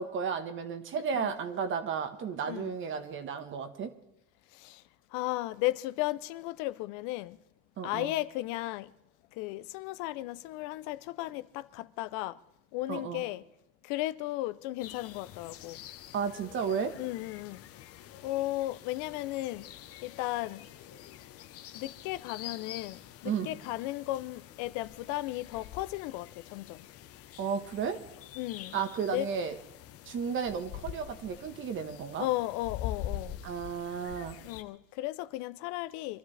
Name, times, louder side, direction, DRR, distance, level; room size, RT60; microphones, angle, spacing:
voice 1, 0.0-3.9 7.8-8.1 12.9-13.2 16.1-16.9 23.2-23.6 27.4-28.0 28.7-29.5 30.0-32.3 33.4-34.4, right 6 dB, 40° right, 1.4 m, -33 dB
voice 2, 2.4-2.7 4.5-4.8 5.1-7.4 7.8-8.9 9.3-12.4 12.7-13.4 13.8-15.8 17.0-17.6 18.2-19.7 20.0-20.7 21.7-26.8 28.4-28.8 29.1-29.3 32.2-33.4 34.4-36.2, left 17 dB, 75° left, 0.6 m, -35 dB
sound 1, 14.8-34.6, left 11 dB, 50° left, 0.9 m, -46 dB
25.0 x 13.0 x 3.3 m
cardioid pair, 130°, 30 cm